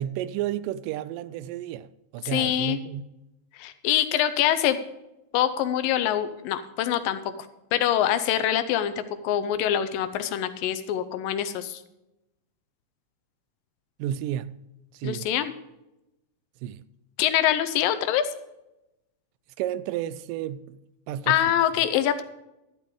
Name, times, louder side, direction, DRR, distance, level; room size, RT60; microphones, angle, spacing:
voice 1, 0.0-3.0 14.0-14.6 14.9-15.3 16.6-16.8 19.6-20.8 21.1-21.9, right 11 dB, 85° right, 2.1 m, -32 dB
voice 2, 2.3-2.8 3.5-4.8 5.3-7.2 7.7-11.8 15.0-15.5 17.2-18.3 21.3-22.2, left 11 dB, 90° left, 2.5 m, -24 dB
12.0 x 11.5 x 3.7 m
omnidirectional pair, 3.9 m